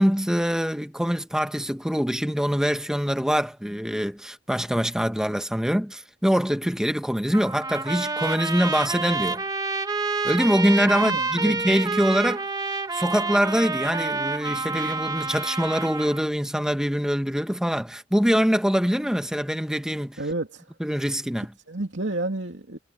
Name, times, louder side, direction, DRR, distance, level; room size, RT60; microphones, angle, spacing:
voice 1, 0.0-9.4 10.2-12.4 12.9-20.2 20.8-21.5, equal, 5° right, 1.3 m, -24 dB
Trumpet, 7.3-16.2, right 3 dB, 20° right, 2.2 m, -28 dB
voice 2, 10.9-11.6 20.2-20.7 21.7-22.8, right 2 dB, 70° right, 2.9 m, -30 dB
head